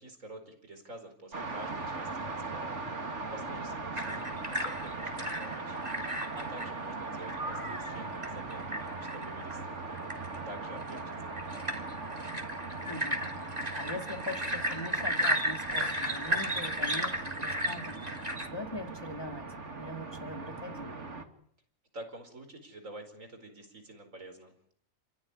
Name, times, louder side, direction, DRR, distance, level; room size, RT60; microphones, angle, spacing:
voice 1, 0.0-5.8 6.0-10.1 10.4-11.8 21.9-24.7, right 1 dB, 75° right, 6 dB, 5.2 m, -48 dB
sound 1, 1.3-21.2, right 3 dB, 60° right, 2.8 m, -40 dB
sound 2, 4.0-6.7 7.2-10.6 10.9-18.5, equal, 30° right, 3.7 m, -34 dB
voice 2, 12.9-18.2 18.5-19.5 19.8-20.9, left 1 dB, 20° left, 5 dB, 2.4 m, -42 dB
30.0 x 16.0 x 9.9 m, 0.65 s
omnidirectional pair, 1.4 m